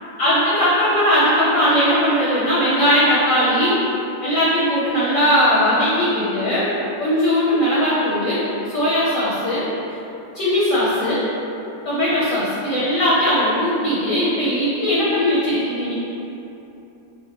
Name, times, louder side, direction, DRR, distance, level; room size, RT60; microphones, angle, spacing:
voice 1, 0.2-3.8 4.2-6.7 7.0-8.4 8.7-9.6 10.3-11.2 11.8-15.9, equal, 60° left, -8 dB, 0.9 m, -19 dB
3.6 x 3.3 x 2.8 m, 2.9 s
omnidirectional pair, 1.9 m